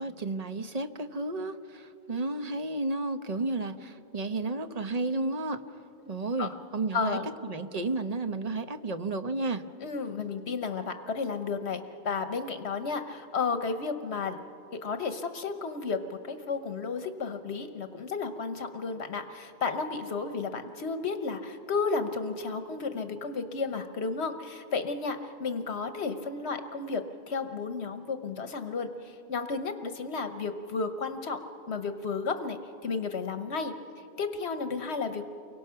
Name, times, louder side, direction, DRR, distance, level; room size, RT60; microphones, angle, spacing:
voice 1, 0.0-5.6 6.1-9.6, right 2 dB, 40° right, 8 dB, 1.0 m, -32 dB
voice 2, 6.9-7.3 9.8-14.4 14.8-31.4 31.7-35.2, left 4 dB, 75° left, 8 dB, 1.3 m, -33 dB
30.0 x 24.5 x 5.8 m, 2.7 s
omnidirectional pair, 1.1 m